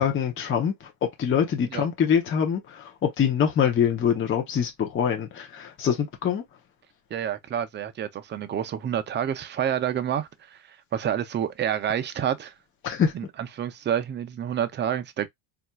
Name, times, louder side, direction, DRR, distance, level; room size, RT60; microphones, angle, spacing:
voice 1, 0.0-6.4 12.8-13.1, left 8 dB, 25° left, 0.6 m, -24 dB
voice 2, 7.1-10.6 10.9-12.5 13.1-13.2 13.6-15.3, right 9 dB, 25° right, 0.4 m, -28 dB
4.3 x 2.4 x 2.2 m
cardioid pair, 135°, 48 cm